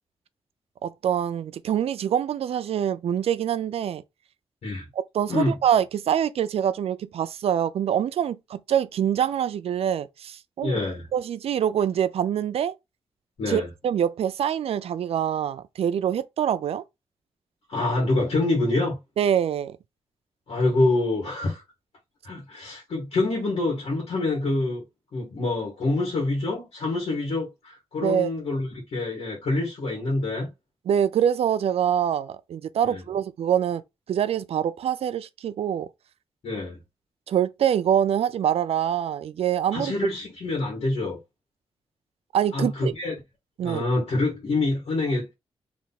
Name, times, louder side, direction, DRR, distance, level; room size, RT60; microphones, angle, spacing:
voice 1, 0.8-4.0 4.9-10.8 11.1-12.7 13.5-16.8 19.2-19.8 28.0-28.3 30.9-33.8 34.1-35.9 37.3-39.9 42.3-42.9 43.6-43.8, right 9 dB, 85° right, 0.4 m, -25 dB
voice 2, 10.6-11.0 13.4-13.7 17.7-19.0 20.5-21.6 22.2-24.8 25.1-30.5 32.8-33.0 36.4-36.8 39.7-41.2 42.5-43.1 43.6-45.3, left 2 dB, 80° left, 1.8 m, -26 dB
3.4 x 2.7 x 4.0 m
cardioid pair, 90°, 10 cm